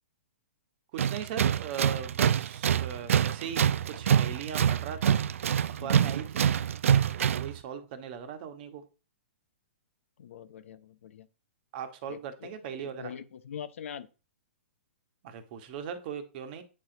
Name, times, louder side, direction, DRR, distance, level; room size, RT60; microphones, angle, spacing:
voice 1, 0.9-5.2 5.7-6.5 7.1-8.8 11.7-13.1 15.2-16.6, right 7 dB, 45° right, 1.2 m, -39 dB
Tools, 1.0-7.6, right 9 dB, 75° right, 0.3 m, -26 dB
voice 2, 5.8-6.1 10.2-11.3 12.1-14.1, left 8 dB, 70° left, 0.8 m, -43 dB
8.5 x 4.4 x 3.8 m
hypercardioid pair, 135°, 7 cm